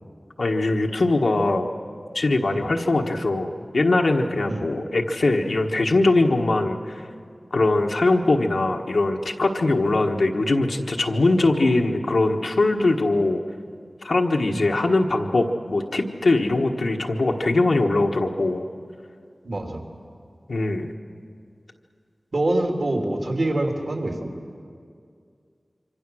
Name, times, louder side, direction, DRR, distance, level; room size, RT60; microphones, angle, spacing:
voice 1, 0.4-1.7 2.1-7.0 7.5-13.4 14.0-18.7 20.5-20.9, left 2 dB, 90° left, 2 dB, 1.3 m, -21 dB
voice 2, 19.4-19.8 22.3-24.3, right 1 dB, 70° right, 2 dB, 3.0 m, -25 dB
26.5 x 24.5 x 6.3 m, 2.3 s
wide cardioid pair, 60°, 0 cm